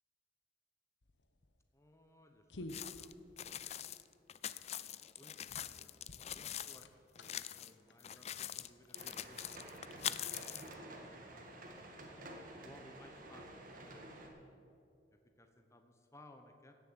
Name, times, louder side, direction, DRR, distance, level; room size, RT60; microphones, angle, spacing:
sound 1, 1.0-10.5, left 1 dB, 90° left, 0.9 m, -55 dB
voice 1, 1.7-3.1 5.2-5.9 6.2-6.9 7.2-11.5 12.6-14.2 15.4-16.7, left 1 dB, 15° left, 5 dB, 0.9 m, -62 dB
sound 2, 2.7-6.8 7.2-7.7 8.0-10.7, left 11 dB, 35° left, 0.4 m, -44 dB
sound 3, 8.9-14.3, right 1 dB, 50° right, 2.0 m, -51 dB
16.5 x 7.3 x 7.9 m, 2.7 s
head